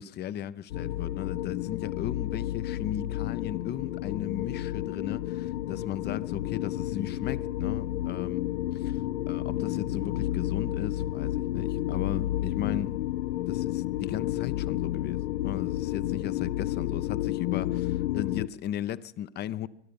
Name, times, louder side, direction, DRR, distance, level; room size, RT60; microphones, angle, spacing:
voice 1, 0.0-8.4 8.8-13.0 13.5-19.7, left 11 dB, 30° left, 0.6 m, -36 dB
sound 1, 0.7-18.5, left 14 dB, 70° left, 0.6 m, -31 dB
23.5 x 10.5 x 5.3 m
hypercardioid pair, 95°, 34 cm